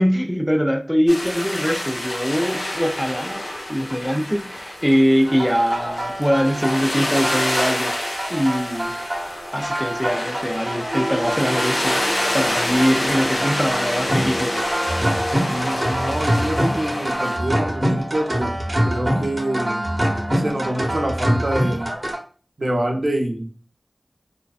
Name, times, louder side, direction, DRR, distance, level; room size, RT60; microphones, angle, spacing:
voice 1, 0.0-8.0 8.3-9.0 9.5-12.1 12.3-14.6, equal, ahead, 0.3 m, -22 dB
sound 1, 1.1-17.4, left 1 dB, 75° left, 0.7 m, -28 dB
sound 2, 5.3-22.2, equal, 45° right, 0.8 m, -26 dB
sound 3, 10.8-21.1, equal, 45° left, 0.9 m, -31 dB
voice 2, 15.3-18.5 18.8-19.8 20.4-21.9 22.6-23.5, right 1 dB, 75° right, 0.6 m, -26 dB
2.5 x 2.1 x 2.3 m
wide cardioid pair, 55°, 0 cm